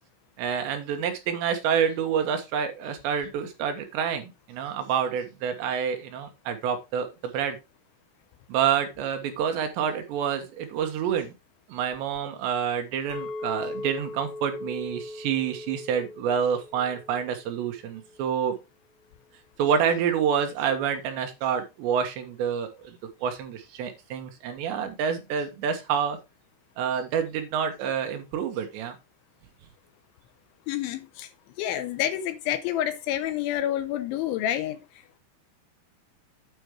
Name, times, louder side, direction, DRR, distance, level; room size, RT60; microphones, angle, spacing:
voice 1, 0.4-7.6 8.5-11.3 11.7-18.6 19.6-26.2 26.8-29.0, right 7 dB, 70° right, 2.9 m, -28 dB
Chink clink, 13.1-17.4 17.8-18.2, left 2 dB, 45° left, 2.8 m, -38 dB
voice 2, 30.7-31.3 31.6-34.8, left 11 dB, 80° left, 2.9 m, -28 dB
9.2 x 5.1 x 4.8 m
omnidirectional pair, 5.8 m